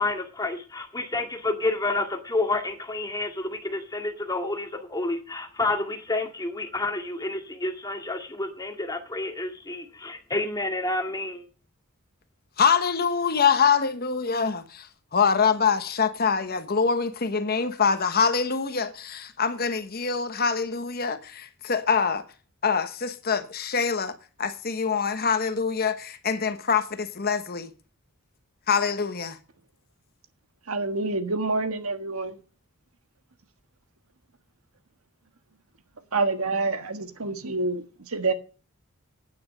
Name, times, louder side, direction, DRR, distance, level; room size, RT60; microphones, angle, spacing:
voice 1, 0.0-11.4, left 2 dB, 15° left, 2.0 m, -29 dB
voice 2, 12.6-14.9 15.1-22.2 22.6-24.1 24.4-27.7 28.7-29.4, left 6 dB, 45° left, 1.0 m, -24 dB
voice 3, 30.7-32.4 36.1-38.3, right 3 dB, 85° right, 1.5 m, -27 dB
9.6 x 9.3 x 6.5 m
head